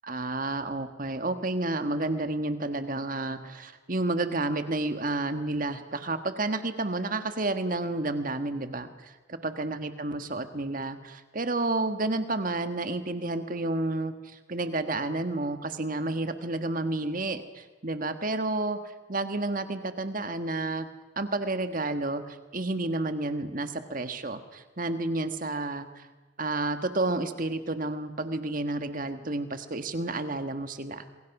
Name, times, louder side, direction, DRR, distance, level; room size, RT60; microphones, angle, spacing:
voice 1, 0.0-18.8 19.1-20.9 21.2-26.1 26.4-31.0, right 2 dB, 40° right, 9 dB, 1.6 m, -30 dB
27.0 x 22.0 x 6.0 m, 1.2 s
head